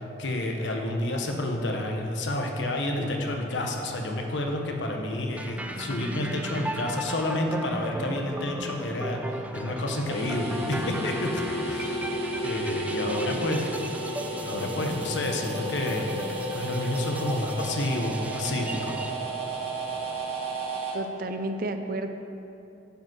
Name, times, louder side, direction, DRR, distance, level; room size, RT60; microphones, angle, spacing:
voice 1, 0.2-12.1 12.4-13.7 14.4-16.1 16.5-19.0, left 1 dB, 85° left, 2 dB, 1.1 m, -30 dB
sound 1, 5.3-20.2, equal, 75° right, 1.3 m, -46 dB
sound 2, 5.4-19.1, right 1 dB, 10° right, 0.3 m, -38 dB
sound 3, 10.1-20.9, right 1 dB, 35° right, 1.4 m, -33 dB
voice 2, 13.0-13.6 20.9-22.1, right 2 dB, 50° right, 7 dB, 0.6 m, -32 dB
10.5 x 5.2 x 6.1 m, 2.8 s
head